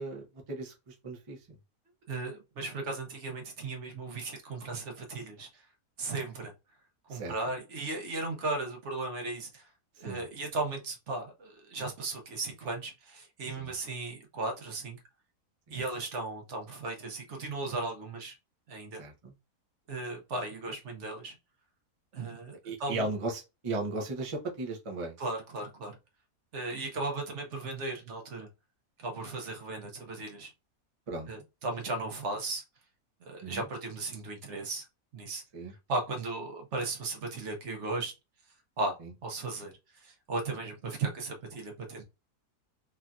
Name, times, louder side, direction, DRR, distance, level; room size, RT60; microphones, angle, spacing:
voice 1, 0.0-1.4 7.1-7.3 10.0-10.2 13.6-13.7 15.7-15.8 19.0-19.3 22.6-25.1 31.1-31.4 33.4-33.6 35.5-35.7 39.0-39.1, right 2 dB, 35° right, 0.6 m, -36 dB
voice 2, 2.1-5.7 6.0-6.5 7.1-9.7 10.0-15.0 15.7-18.3 18.7-19.0 19.9-21.4 22.1-23.1 25.2-26.0 26.5-28.5 29.0-30.5 31.3-32.6 33.2-34.9 35.1-35.4 35.9-38.1 38.8-42.0, right 3 dB, 60° right, 1.0 m, -36 dB
3.2 x 2.7 x 2.3 m
omnidirectional pair, 1.5 m